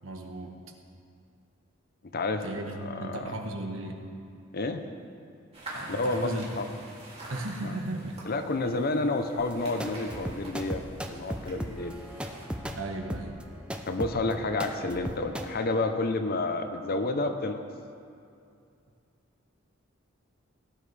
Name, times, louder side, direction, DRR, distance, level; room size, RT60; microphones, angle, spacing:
voice 1, 0.0-0.6 2.4-4.0 5.7-6.6 7.3-8.3 12.7-13.4, right 2 dB, 75° right, 3 dB, 1.2 m, -36 dB
voice 2, 2.1-2.4 2.7-3.3 4.5-4.8 5.9-6.7 7.6-7.7 8.3-12.0 13.9-17.6, left 2 dB, 50° left, 7 dB, 0.7 m, -30 dB
sound 1, 5.5-12.5, right 1 dB, 30° right, 2.7 m, -45 dB
sound 2, 9.4-15.5, equal, 5° right, 0.6 m, -36 dB
18.0 x 9.3 x 3.4 m, 2.5 s
head